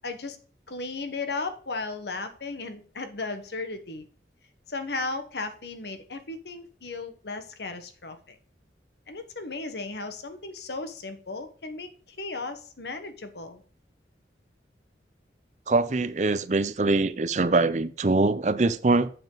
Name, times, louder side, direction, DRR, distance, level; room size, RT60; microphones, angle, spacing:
voice 1, 0.0-0.4 0.7-4.1 4.7-8.3 9.1-13.6, left 3 dB, 70° left, 1.2 m, -35 dB
voice 2, 15.7-19.1, right 3 dB, 40° right, 0.5 m, -23 dB
7.9 x 7.1 x 3.9 m
head